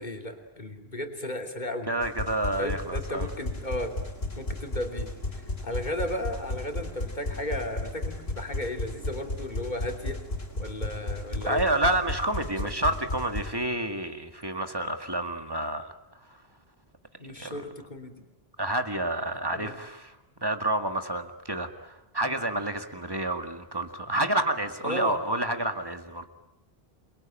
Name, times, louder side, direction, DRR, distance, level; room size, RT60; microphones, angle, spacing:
voice 1, 0.0-1.9 2.6-3.9 4.3-5.1 5.6-10.2 10.6-11.6 17.2-18.1 19.5-19.7 24.8-25.2, left 1 dB, 45° left, 4 dB, 3.3 m, -34 dB
voice 2, 1.9-3.3 11.4-15.9 16.3-16.4 17.4-17.6 18.6-20.2 20.4-26.2, right 1 dB, 25° right, 7 dB, 2.0 m, -29 dB
chitty bang sound tickling loop, 2.0-13.5, left 2 dB, 75° left, 4.0 m, -34 dB
28.5 x 22.5 x 9.1 m, 0.90 s
omnidirectional pair, 1.0 m